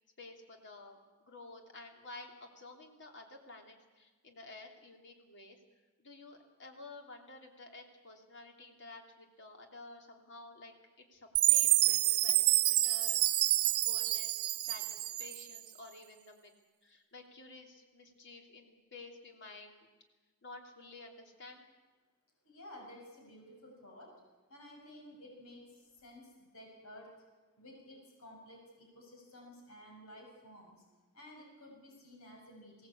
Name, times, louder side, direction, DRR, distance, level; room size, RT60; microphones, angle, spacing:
voice 1, 0.2-5.6 6.0-13.2 13.6-16.5 16.8-19.9 20.4-21.6, left 2 dB, 55° left, 3 dB, 3.0 m, -52 dB
Chime, 11.3-15.6, right 16 dB, 85° right, 1.0 m, -28 dB
voice 2, 22.4-24.2 24.5-27.1 27.6-30.8 31.1-32.9, left 1 dB, 75° left, 0 dB, 6.5 m, -53 dB
22.0 x 17.5 x 8.5 m, 1.3 s
head